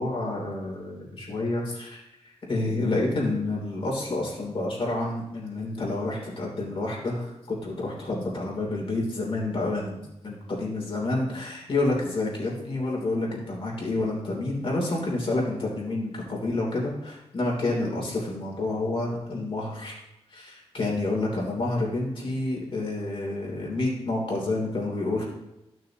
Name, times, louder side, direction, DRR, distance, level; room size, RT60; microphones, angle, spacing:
voice 1, 0.0-2.0 2.5-20.0 20.3-25.3, left 2 dB, 55° left, -2 dB, 3.1 m, -29 dB
12.0 x 6.4 x 2.9 m, 0.92 s
wide cardioid pair, 95°, 11 cm